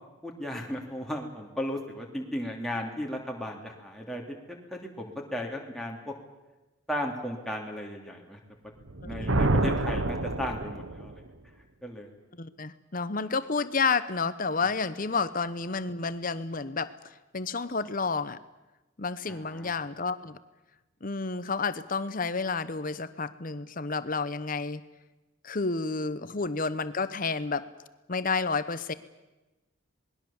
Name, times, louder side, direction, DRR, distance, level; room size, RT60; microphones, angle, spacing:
voice 1, 0.2-6.1 6.9-8.4 9.0-11.3 11.8-12.1 19.3-19.7, left 1 dB, ahead, -1 dB, 2.9 m, -35 dB
Thunder, 8.8-11.2, right 2 dB, 75° right, 1.4 m, -27 dB
voice 2, 12.4-16.9 17.3-18.4 19.0-20.4 21.0-24.8 25.4-27.6 28.1-28.9, left 4 dB, 40° left, 14 dB, 1.0 m, -30 dB
27.0 x 20.5 x 7.2 m, 1.1 s
head